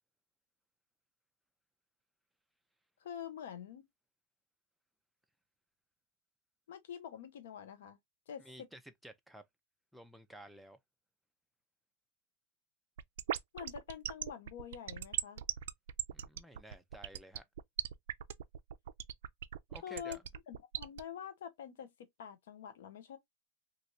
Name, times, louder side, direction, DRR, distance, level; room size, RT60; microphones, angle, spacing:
voice 1, 3.0-3.8 6.7-8.0 8.3-8.5 13.5-15.4 19.8-20.2 20.5-23.2, left 9 dB, 80° left, 0.8 m, -46 dB
voice 2, 8.4-9.4 9.9-10.8 16.1-17.4 19.7-20.2, right 1 dB, ahead, 0.4 m, -53 dB
sound 1, 13.0-21.0, right 11 dB, 80° right, 0.3 m, -38 dB
3.1 x 2.6 x 2.6 m
supercardioid pair, 150°, 0 cm